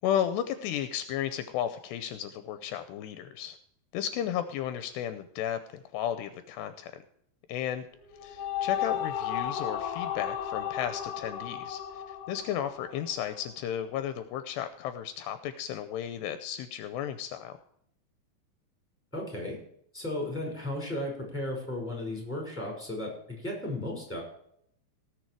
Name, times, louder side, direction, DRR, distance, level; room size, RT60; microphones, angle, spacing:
voice 1, 0.0-3.6 3.9-7.0 7.5-7.9 8.2-17.6, left 10 dB, 80° left, 10 dB, 2.7 m, -34 dB
sound 1, 8.0-13.5, left 9 dB, 65° left, 2.5 m, -34 dB
voice 2, 19.1-19.6 19.9-24.2, left 1 dB, 5° left, 1 dB, 4.9 m, -35 dB
18.0 x 7.0 x 4.7 m, 0.69 s
omnidirectional pair, 5.1 m